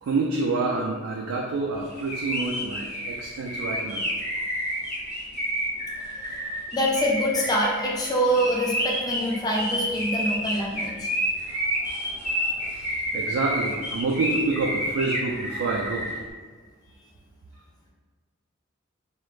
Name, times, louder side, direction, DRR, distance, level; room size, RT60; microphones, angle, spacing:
voice 1, 0.0-4.0 12.7-12.9 13.1-16.1, right 3 dB, 85° right, -1 dB, 0.3 m, -27 dB
sound 1, 1.9-16.2, equal, 5° right, 0.8 m, -30 dB
voice 2, 6.7-11.1, equal, 20° left, -3 dB, 0.4 m, -25 dB
2.4 x 2.0 x 3.1 m, 1.4 s
head